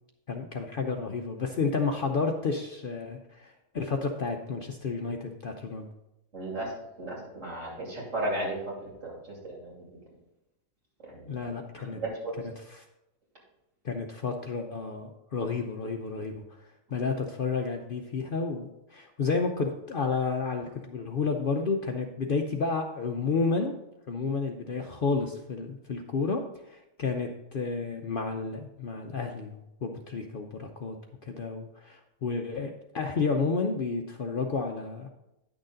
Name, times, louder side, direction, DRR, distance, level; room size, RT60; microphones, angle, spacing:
voice 1, 0.3-5.9 11.3-12.0 12.4-12.8 13.8-16.4 16.9-23.7 24.1-31.0 31.2-35.1, left 4 dB, 55° left, 3 dB, 0.7 m, -31 dB
voice 2, 6.3-6.7 7.0-9.1 9.4-9.7 11.1-11.4 12.0-12.3, right 1 dB, 65° right, -3 dB, 3.1 m, -34 dB
9.9 x 6.5 x 3.8 m, 0.90 s
omnidirectional pair, 1.4 m